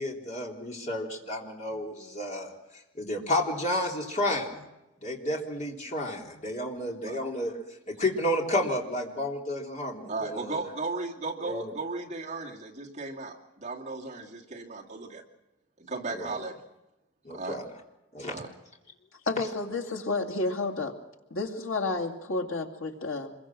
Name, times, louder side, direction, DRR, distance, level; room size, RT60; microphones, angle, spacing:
voice 1, 0.0-2.5 3.0-4.7 5.0-7.6 7.9-10.6 11.4-11.7 16.1-16.4 17.2-17.6 18.1-18.4, left 1 dB, 35° left, -1 dB, 3.7 m, -31 dB
voice 2, 10.1-15.2 15.8-16.6 17.3-17.6 18.3-18.5, right 3 dB, 35° right, -2 dB, 2.5 m, -36 dB
voice 3, 19.3-21.0 21.3-23.3, left 3 dB, 85° left, 3 dB, 2.5 m, -31 dB
26.5 x 22.5 x 6.3 m, 0.96 s
head